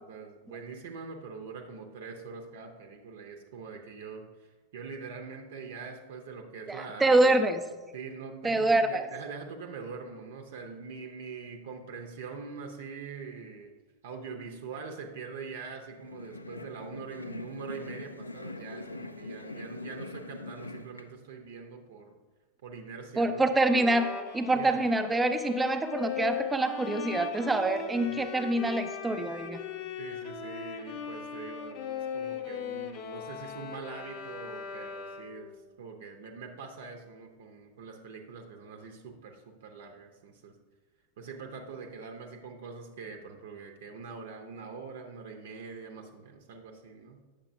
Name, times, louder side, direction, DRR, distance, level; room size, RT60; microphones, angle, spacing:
voice 1, 0.0-4.5 4.7-7.5 7.9-13.7 14.0-22.1 22.6-23.4 24.5-24.8 28.0-28.2 30.0-35.5 35.8-40.5 41.2-47.2, right 5 dB, 55° right, 3 dB, 0.7 m, -43 dB
voice 2, 6.7-7.6 8.4-9.1 23.2-24.1 24.3-29.6, right 2 dB, 10° right, 8 dB, 0.5 m, -26 dB
sound 1, 15.9-21.0, left 2 dB, 85° left, 0.4 m, -42 dB
Bowed string instrument, 23.7-35.5, left 7 dB, 40° left, 0.6 m, -39 dB
8.8 x 6.7 x 2.6 m, 1.3 s
figure-of-eight pair, 90°, 0 cm